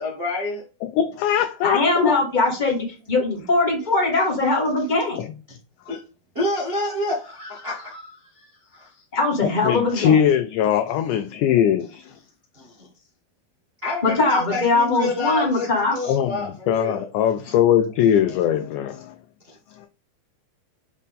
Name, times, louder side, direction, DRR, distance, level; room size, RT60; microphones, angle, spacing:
voice 1, 0.0-0.6 5.5-5.6 5.9-6.0 6.3-9.0 12.5-12.9 13.8-17.1 19.4-19.5, left 2 dB, 80° right, 0.5 m, -29 dB
voice 2, 0.8-2.1 5.2-5.3 9.6-12.1 16.0-19.2, left 9 dB, 85° left, 1.8 m, -21 dB
voice 3, 1.6-5.2 9.1-10.3 14.0-15.9, left 3 dB, 25° left, 1.0 m, -21 dB
7.3 x 4.2 x 3.6 m
omnidirectional pair, 4.2 m